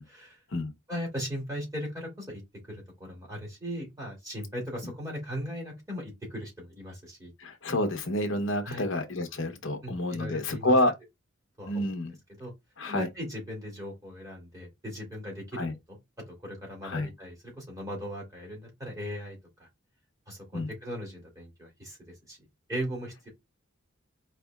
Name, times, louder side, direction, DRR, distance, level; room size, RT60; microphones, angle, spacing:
voice 1, 0.1-0.4 0.9-2.4 2.7-7.3 8.6-8.8 9.8-10.8 11.6-11.9 12.4-12.5 12.9-16.0 16.3-19.7 20.3-22.4 22.7-23.3, equal, 15° right, 2.2 m, -38 dB
voice 2, 7.4-10.9 11.7-12.1 12.8-13.1 15.6-15.7 16.8-17.1 20.5-20.7, left 1 dB, 60° left, 0.9 m, -28 dB
4.5 x 3.4 x 2.3 m
head